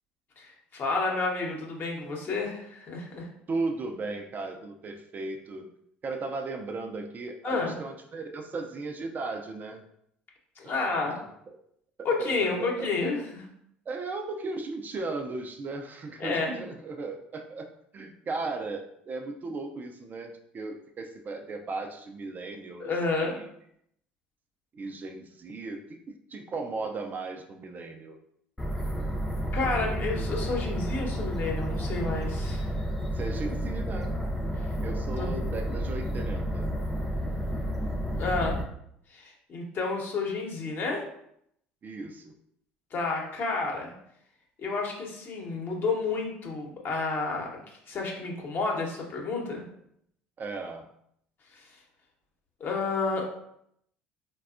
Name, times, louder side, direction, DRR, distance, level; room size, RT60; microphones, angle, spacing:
voice 1, 0.4-3.3 7.4-7.8 10.6-11.2 12.0-13.5 16.2-16.6 22.8-23.4 29.5-32.7 34.6-34.7 35.2-35.3 38.2-38.6 39.1-41.0 42.9-43.9 44.6-47.5 47.9-49.7 51.5-51.6 52.6-53.3, left 3 dB, 45° left, 0 dB, 0.9 m, -30 dB
voice 2, 3.5-5.7 6.0-9.8 10.6-10.9 12.0-12.9 13.9-23.5 24.7-26.0 26.3-28.2 32.9-34.2 34.8-36.7 41.8-42.3 50.4-50.9, right 3 dB, 35° right, 4 dB, 0.4 m, -36 dB
sound 1, 28.6-38.6, equal, 10° left, 0.6 m, -31 dB
4.0 x 2.2 x 2.4 m, 0.72 s
hypercardioid pair, 65°, 5 cm